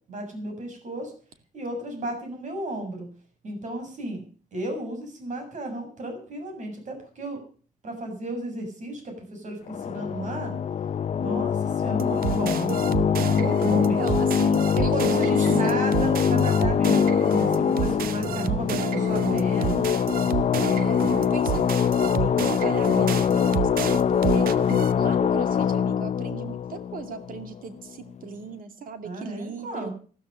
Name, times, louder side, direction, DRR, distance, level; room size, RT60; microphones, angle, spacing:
voice 1, 0.1-1.1 1.5-3.1 3.4-4.2 4.5-7.4 7.8-10.5 11.2-13.0 13.3-14.1 14.8-20.4 29.0-29.9, right 1 dB, 55° right, 5 dB, 7.2 m, -33 dB
sound 1, 9.7-27.8, left 7 dB, 50° left, 0.7 m, -23 dB
sound 2, 12.0-24.9, right 11 dB, 90° right, 0.9 m, -31 dB
voice 2, 13.8-14.9 15.2-15.3 15.6-16.0 20.6-29.9, right 6 dB, 75° right, 8 dB, 2.4 m, -38 dB
14.0 x 13.5 x 6.7 m, 0.42 s
cardioid pair, 135°, 15 cm